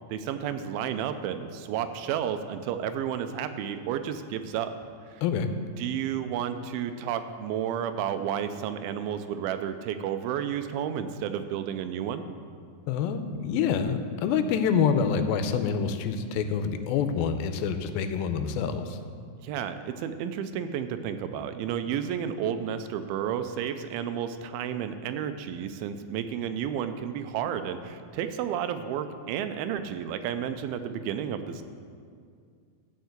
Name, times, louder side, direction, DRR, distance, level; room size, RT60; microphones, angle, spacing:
voice 1, 0.1-4.7 5.1-5.2 5.8-12.3 19.4-31.6, right 9 dB, 90° right, 9 dB, 2.5 m, -31 dB
voice 2, 12.9-19.0, left 6 dB, 90° left, 8 dB, 2.5 m, -27 dB
13.0 x 4.6 x 7.9 m, 2.2 s
omnidirectional pair, 4.2 m